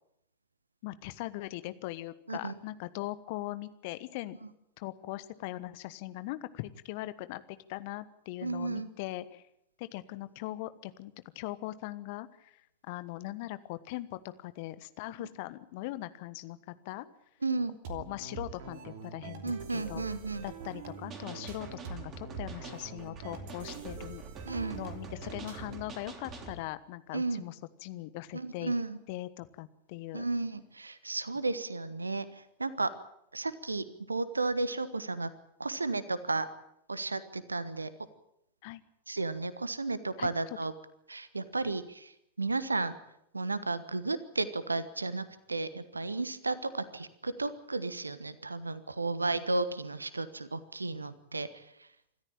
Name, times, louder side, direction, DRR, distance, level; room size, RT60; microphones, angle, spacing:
voice 1, 0.8-4.4 4.8-9.4 9.8-12.5 12.8-17.0 17.9-20.0 20.4-24.2 24.7-27.5 27.8-28.7 29.1-30.2 38.6-38.8 40.2-40.3, left 17 dB, 50° left, 14 dB, 1.2 m, -40 dB
voice 2, 2.3-2.6 8.4-8.9 17.4-17.7 19.4-20.4 24.4-24.8 27.1-27.4 28.3-29.0 30.1-32.9 33.3-35.3 35.6-36.5 36.9-37.9 39.1-40.7 41.1-42.9 43.3-51.7, right 3 dB, 80° right, 15 dB, 1.3 m, -33 dB
sound 1, 17.8-26.0, right 6 dB, 50° right, 2.9 m, -44 dB
sound 2, 21.1-26.6, right 3 dB, 25° right, 3.5 m, -46 dB
26.5 x 14.0 x 8.9 m, 0.77 s
figure-of-eight pair, 90°, 0 cm